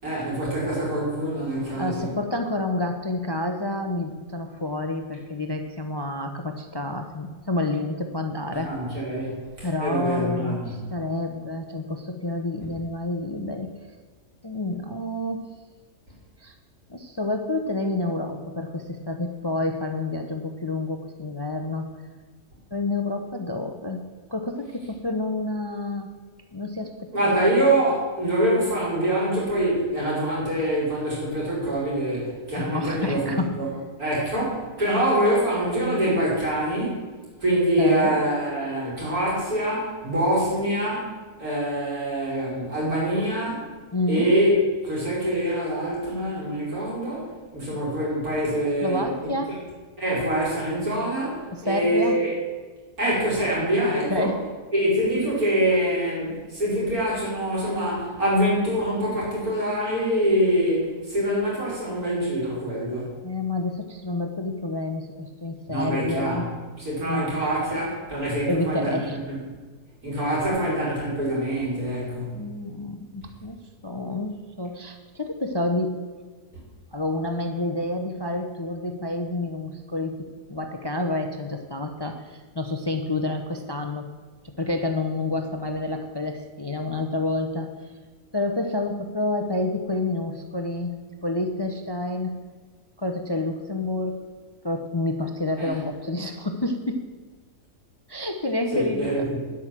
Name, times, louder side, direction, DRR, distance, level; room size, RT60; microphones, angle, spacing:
voice 1, 0.0-2.1 8.5-10.7 27.1-33.7 34.0-37.0 37.4-41.1 41.4-43.6 44.1-44.5 44.8-49.3 50.0-52.3 53.0-54.3 54.7-63.1 65.7-66.4 66.8-69.0 69.3-69.4 70.0-72.4 95.6-95.7 98.7-99.2, right 1 dB, 80° right, -6 dB, 5.4 m, -25 dB
voice 2, 1.8-8.7 9.6-13.7 14.4-15.5 16.4-16.5 16.9-21.9 22.7-24.0 24.3-26.1 26.5-27.3 32.6-33.6 34.8-34.9 37.8-38.2 43.9-44.3 48.8-49.6 51.5-52.2 54.1-54.5 63.2-66.5 67.1-67.9 68.5-69.2 72.3-73.6 73.8-76.1 76.9-84.1 84.6-87.9 88.3-92.4 93.0-94.2 94.6-97.1 98.1-99.2, left 2 dB, 25° left, 6 dB, 0.5 m, -29 dB
10.5 x 8.4 x 7.4 m, 1.4 s
omnidirectional pair, 1.5 m